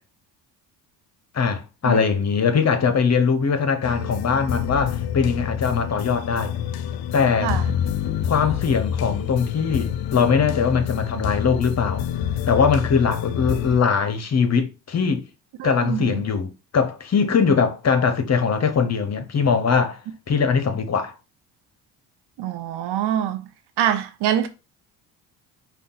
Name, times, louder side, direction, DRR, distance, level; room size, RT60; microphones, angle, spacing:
voice 1, 1.3-6.5 7.1-7.5 8.3-12.0 12.5-15.2 15.6-20.0 20.3-21.1, left 6 dB, 35° left, 0.9 m, -21 dB
sound 1, 3.8-13.8, left 9 dB, 55° left, 0.5 m, -27 dB
voice 2, 15.6-16.2 22.4-23.4 23.8-24.5, right 10 dB, 60° right, 0.8 m, -24 dB
5.1 x 2.4 x 3.9 m
supercardioid pair, 65°, 45 cm